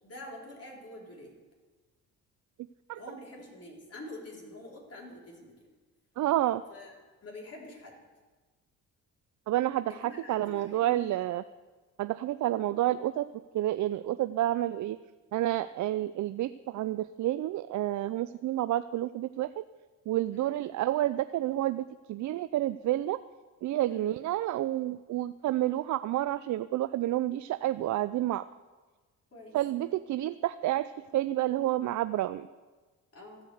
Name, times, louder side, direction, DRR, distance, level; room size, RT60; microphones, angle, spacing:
voice 1, 0.0-1.3 3.0-5.5 6.7-6.9 7.2-8.0 9.9-11.1 20.3-20.6 23.9-24.2 29.3-29.5 33.1-33.4, left 1 dB, 40° left, -3 dB, 4.2 m, -46 dB
voice 2, 6.2-6.6 9.5-11.4 12.0-13.3 13.5-15.0 15.3-19.6 20.1-23.2 23.6-28.4 29.5-32.5, right 14 dB, 55° right, 13 dB, 0.5 m, -29 dB
15.0 x 5.2 x 7.9 m, 1.3 s
supercardioid pair, 60°, 35 cm